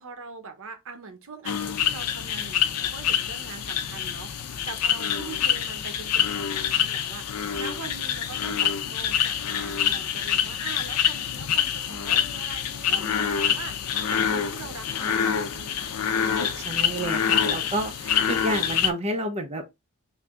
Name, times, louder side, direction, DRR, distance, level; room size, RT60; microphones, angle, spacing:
voice 1, 0.0-15.9, right 4 dB, 65° right, 0.7 m, -42 dB
sound 1, 1.4-18.9, left 9 dB, 90° left, 0.5 m, -26 dB
voice 2, 16.5-19.7, right 1 dB, 30° right, 0.6 m, -30 dB
3.3 x 2.6 x 3.4 m
head